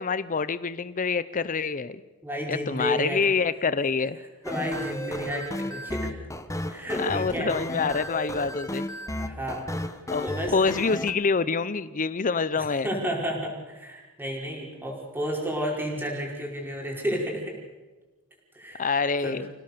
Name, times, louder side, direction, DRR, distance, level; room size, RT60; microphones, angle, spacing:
voice 1, 0.0-2.0 2.5-4.2 7.0-8.9 10.1-12.9 18.8-19.5, left 5 dB, 40° left, 16 dB, 0.7 m, -26 dB
voice 2, 2.2-3.2 4.4-6.1 6.7-7.5 9.2-9.6 10.2-10.5 12.5-17.5 18.5-18.9 19.2-19.4, equal, 10° right, -2 dB, 5.2 m, -31 dB
sound 1, 4.4-11.1, left 1 dB, 15° left, 1.2 m, -33 dB
27.5 x 17.5 x 6.8 m, 1.2 s
head